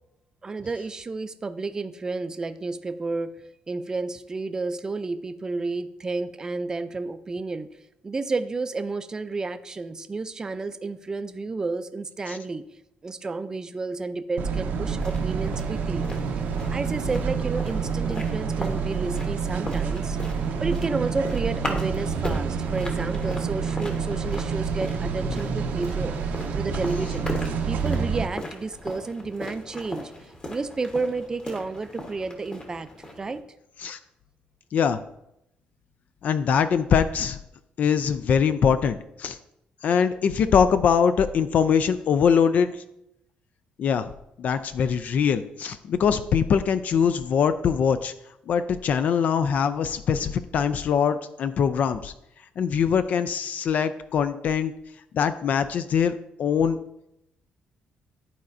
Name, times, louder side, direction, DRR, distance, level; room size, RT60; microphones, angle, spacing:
voice 1, 0.4-3.4 3.7-7.8 8.0-12.7 13.0-16.1 16.7-20.2 20.6-27.3 27.7-30.1 30.5-32.9 33.2-33.5, right 3 dB, 20° right, 10 dB, 0.4 m, -31 dB
sound 1, 14.4-28.3, right 5 dB, 75° right, 0.7 m, -28 dB
sound 2, 14.9-33.4, left 1 dB, 30° left, 1.0 m, -38 dB
voice 2, 36.2-37.4 37.8-39.4 39.8-42.8 43.8-44.1 44.4-48.1 48.5-52.1 52.6-54.7 55.1-56.8, left 7 dB, 50° left, 11 dB, 0.3 m, -22 dB
12.0 x 4.2 x 2.6 m, 0.82 s
cardioid pair, 140°, 3 cm